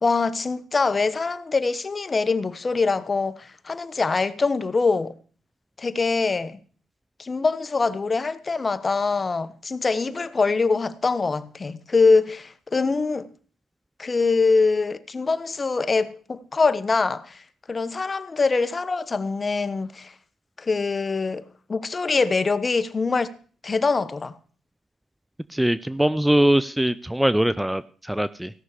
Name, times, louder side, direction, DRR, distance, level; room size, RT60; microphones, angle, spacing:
voice 1, 0.0-5.1 5.8-6.6 7.2-13.3 14.0-17.4 17.7-20.1 20.6-21.4 21.7-23.3 23.6-24.3, left 4 dB, 30° left, 1.1 m, -23 dB
voice 2, 25.5-27.8 28.1-28.5, right 1 dB, 5° right, 0.5 m, -21 dB
17.0 x 6.2 x 8.1 m
cardioid pair, 90°, 0 cm